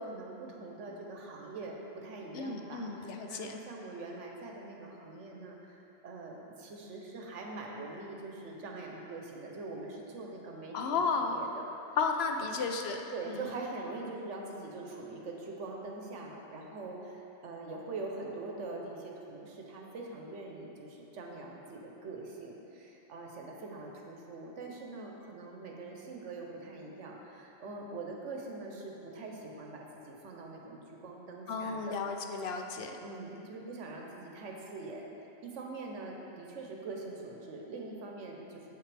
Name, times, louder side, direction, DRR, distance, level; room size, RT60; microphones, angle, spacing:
voice 1, 0.0-10.7 11.2-11.7 13.1-32.0 33.0-35.1 35.4-38.7, right 3 dB, 85° right, 0 dB, 1.2 m, -43 dB
voice 2, 2.3-3.6 10.7-11.4 12.0-13.4 31.5-33.0, left 4 dB, 65° left, 4 dB, 0.8 m, -33 dB
7.9 x 6.0 x 3.3 m, 3.0 s
omnidirectional pair, 1.2 m